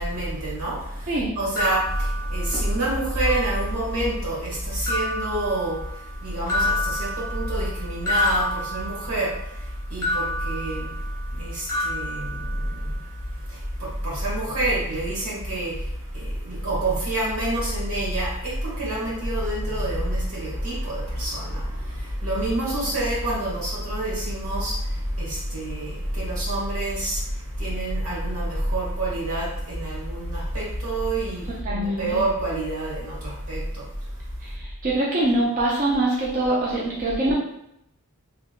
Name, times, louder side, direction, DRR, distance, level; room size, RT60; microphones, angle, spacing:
voice 1, 0.0-34.1, right 1 dB, 75° right, -5 dB, 1.3 m, -27 dB
sound 1, 1.6-2.8 3.2-4.0 4.9-6.1 6.5-9.4 10.0-11.4 11.7-13.0, left 1 dB, 15° left, 0.8 m, -29 dB
voice 2, 31.7-32.2 34.4-37.3, right 1 dB, 40° right, -5 dB, 0.5 m, -24 dB
3.2 x 2.8 x 2.4 m, 0.79 s
head